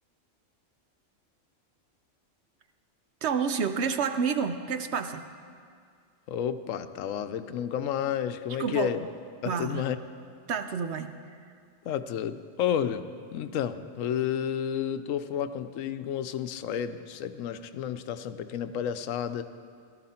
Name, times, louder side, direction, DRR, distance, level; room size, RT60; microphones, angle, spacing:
voice 1, 3.2-5.2 8.6-8.9 9.5-9.9 10.5-11.1, right 6 dB, 65° right, 8 dB, 0.9 m, -29 dB
voice 2, 6.3-9.1 9.4-10.0 11.8-19.4, left 9 dB, 85° left, 11 dB, 1.0 m, -31 dB
17.5 x 12.5 x 4.3 m, 2.2 s
omnidirectional pair, 1.3 m